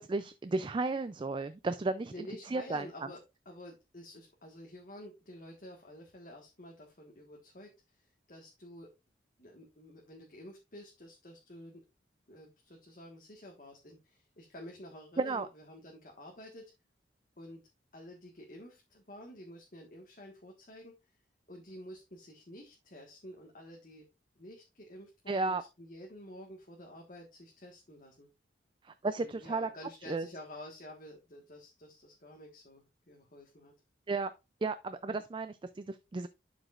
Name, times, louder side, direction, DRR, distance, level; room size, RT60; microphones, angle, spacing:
voice 1, 0.0-2.3 2.5-2.9 15.2-15.5 25.3-25.6 28.8-29.7 30.1-30.3 34.1-34.3 34.6-36.3, right 3 dB, 25° right, 0.4 m, -33 dB
voice 2, 2.1-3.2 3.4-8.9 9.4-11.8 12.3-16.7 17.4-17.6 17.9-21.1 21.5-24.1 24.3-28.3 29.2-33.7, left 1 dB, 50° left, 1.5 m, -50 dB
11.5 x 5.0 x 2.4 m
head